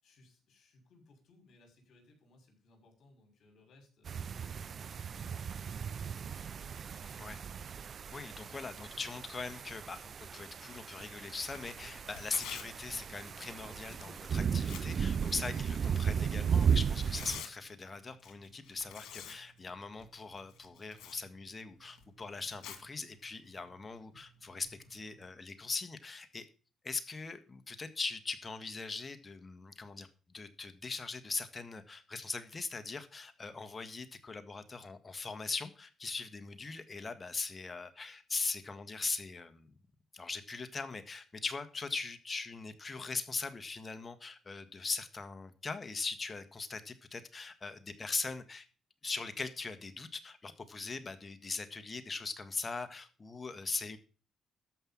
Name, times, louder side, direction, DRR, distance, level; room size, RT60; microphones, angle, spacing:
voice 1, 0.0-7.6 14.0-14.2, left 2 dB, 65° left, 3 dB, 6.1 m, -63 dB
sound 1, 4.1-17.4, right 7 dB, 50° right, 0.5 m, -35 dB
voice 2, 8.1-26.5 26.8-39.7 40.1-48.7 49.0-54.0, left 4 dB, 30° left, 10 dB, 1.7 m, -40 dB
Tearing, 11.4-25.3, left 8 dB, 85° left, 2.2 m, -52 dB
13.5 x 5.6 x 7.4 m, 0.37 s
cardioid pair, 90°, 0 cm